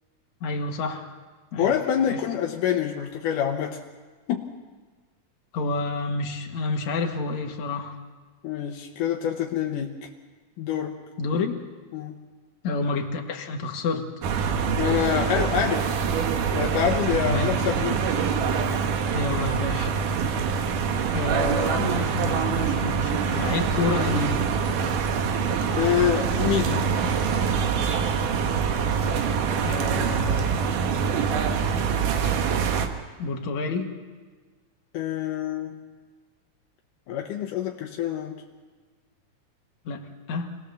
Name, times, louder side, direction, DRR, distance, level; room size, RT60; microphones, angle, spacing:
voice 1, 0.4-1.1 1.5-1.7 2.1-2.2 5.5-8.0 11.2-11.6 12.6-14.1 17.2-17.5 19.1-19.9 21.1-24.5 29.6-30.7 33.2-33.9 39.9-40.6, left 3 dB, 65° left, 2 dB, 3.0 m, -29 dB
voice 2, 1.6-3.8 4.3-4.5 8.4-10.1 10.6-11.0 11.9-12.2 14.8-16.0 16.5-18.0 25.8-26.9 34.9-35.8 37.1-38.4, left 9 dB, 80° left, 3 dB, 2.7 m, -26 dB
sound 1, 14.2-32.9, right 6 dB, 80° right, 2.9 m, -25 dB
26.0 x 19.5 x 6.9 m, 1.4 s
omnidirectional pair, 3.7 m